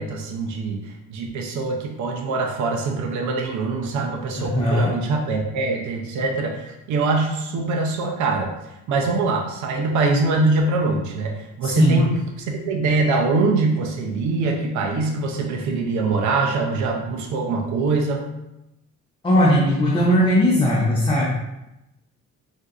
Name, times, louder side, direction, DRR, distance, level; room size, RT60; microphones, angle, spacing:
voice 1, 0.0-8.5 8.9-12.2 12.5-18.3, right 3 dB, 75° right, 2 dB, 0.5 m, -23 dB
voice 2, 4.4-5.0 11.6-12.0 19.2-21.3, equal, 15° left, -4 dB, 0.6 m, -18 dB
3.7 x 2.5 x 2.4 m, 0.91 s
cardioid pair, 90°, 30 cm